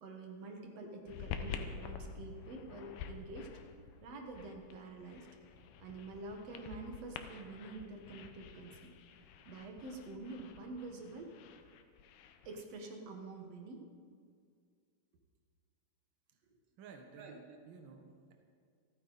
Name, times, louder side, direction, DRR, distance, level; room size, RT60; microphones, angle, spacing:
voice 1, 0.0-3.5 4.0-5.3 5.8-8.9 9.5-11.3 12.5-13.8 17.2-17.4, right 2 dB, 55° right, 2 dB, 2.0 m, -47 dB
sound 1, 1.1-12.6, left 7 dB, 80° left, 2.7 m, -48 dB
voice 2, 16.8-18.3, right 5 dB, 85° right, 3 dB, 1.1 m, -54 dB
27.0 x 9.5 x 4.1 m, 2.1 s
omnidirectional pair, 4.4 m